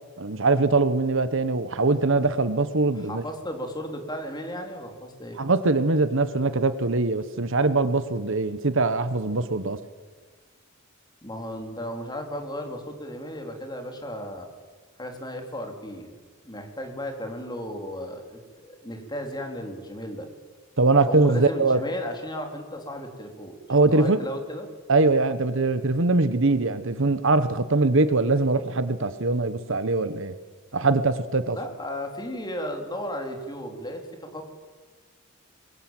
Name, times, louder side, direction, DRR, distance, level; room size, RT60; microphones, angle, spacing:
voice 1, 0.2-3.2 5.4-9.8 20.8-21.8 23.7-24.2 24.9-30.3 30.7-31.6, right 3 dB, 65° right, 12 dB, 1.2 m, -22 dB
voice 2, 2.9-5.4 11.2-14.5 15.0-16.1 16.4-20.3 21.1-24.7 31.5-34.5, equal, 20° left, 4 dB, 3.6 m, -35 dB
25.5 x 21.5 x 9.1 m, 1.4 s
head